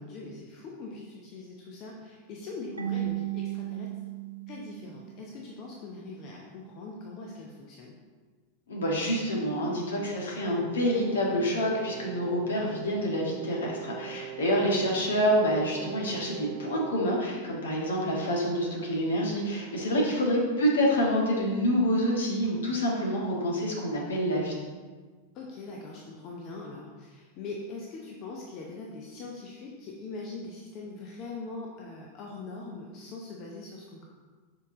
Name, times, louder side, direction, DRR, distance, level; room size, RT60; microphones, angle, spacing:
voice 1, 0.0-3.9 4.5-8.0 14.4-15.1 20.0-20.3 25.3-34.1, left 3 dB, 35° left, -2 dB, 0.8 m, -42 dB
Marimba xylophone / Wood, 2.8-5.5, right 14 dB, 80° right, 0.5 m, -35 dB
voice 2, 8.7-24.6, equal, 65° left, -2 dB, 1.6 m, -27 dB
Brass instrument, 10.3-17.2, right 11 dB, 35° right, 1.1 m, -41 dB
6.8 x 4.8 x 3.7 m, 1.4 s
figure-of-eight pair, 90°, 0 cm